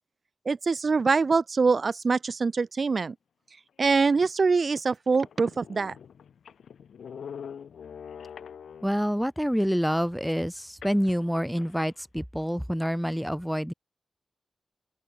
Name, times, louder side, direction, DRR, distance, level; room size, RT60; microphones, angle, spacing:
voice 1, 0.5-3.1 3.8-5.9, right 4 dB, 60° right, 0.4 m, -24 dB
sound 1, 4.1-4.2 4.8-4.9 5.1-9.1 10.8-11.9, left 7 dB, 85° left, 2.2 m, -44 dB
voice 2, 8.8-13.7, equal, ahead, 1.3 m, -27 dB
open air
cardioid pair, 40°, 0 cm